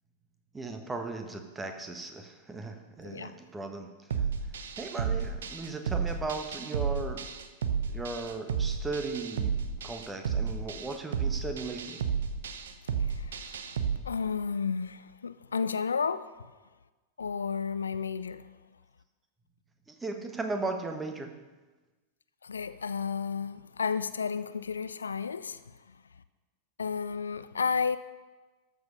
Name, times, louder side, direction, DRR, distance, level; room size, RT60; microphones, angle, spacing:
voice 1, 0.5-3.9 4.8-7.2 7.9-12.0 19.9-21.3, right 3 dB, 10° right, 1.4 m, -37 dB
voice 2, 3.0-3.3 13.0-16.3 17.2-18.5 22.4-25.6 26.8-28.0, left 6 dB, 75° left, 0.4 m, -32 dB
sound 1, 4.1-14.0, right 6 dB, 65° right, 0.8 m, -32 dB
13.0 x 6.9 x 5.4 m
figure-of-eight pair, 90°, 0 cm